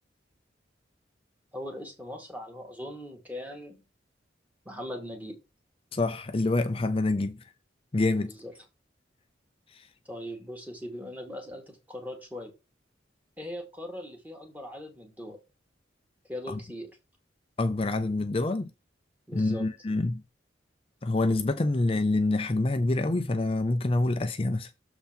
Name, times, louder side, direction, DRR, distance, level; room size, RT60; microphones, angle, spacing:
voice 1, 1.5-3.8 4.7-5.4 8.2-8.5 10.1-12.5 13.4-15.4 16.3-16.9 19.3-19.7, equal, 10° right, 2.1 m, -40 dB
voice 2, 5.9-7.4 7.9-8.3 9.7-9.9 16.5-16.6 17.6-18.7 19.3-20.2 21.0-24.7, left 2 dB, 30° left, 0.5 m, -26 dB
6.9 x 4.5 x 5.2 m
head